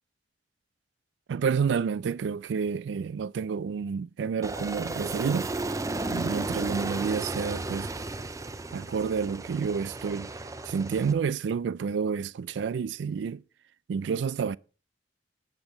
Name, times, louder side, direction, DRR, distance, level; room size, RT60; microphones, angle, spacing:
voice 1, 1.3-5.5 6.1-7.9 8.7-10.4 10.6-13.4 13.9-14.6, right 6 dB, 85° right, 0.3 m, -29 dB
Aircraft, 4.4-11.1, right 2 dB, 20° right, 0.5 m, -34 dB
8.8 x 5.8 x 5.3 m
head